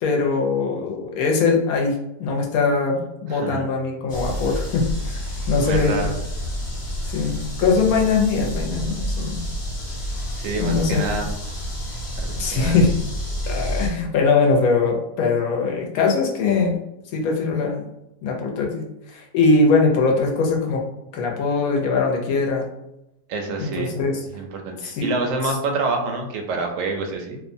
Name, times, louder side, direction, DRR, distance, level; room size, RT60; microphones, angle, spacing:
voice 1, 0.0-5.9 7.0-9.4 10.6-11.1 12.4-12.9 13.5-16.8 17.1-17.8 18.2-20.8 21.1-22.7 23.6-24.2 24.8-25.1, left 4 dB, 70° left, 0 dB, 0.9 m, -21 dB
voice 2, 3.3-3.7 5.6-6.1 10.3-11.3 12.2-12.8 23.3-23.9 24.3-27.4, right 3 dB, 70° right, 2 dB, 0.8 m, -27 dB
sound 1, 4.1-13.9, equal, 40° left, 1.1 m, -29 dB
2.8 x 2.1 x 2.5 m, 0.87 s
omnidirectional pair, 1.7 m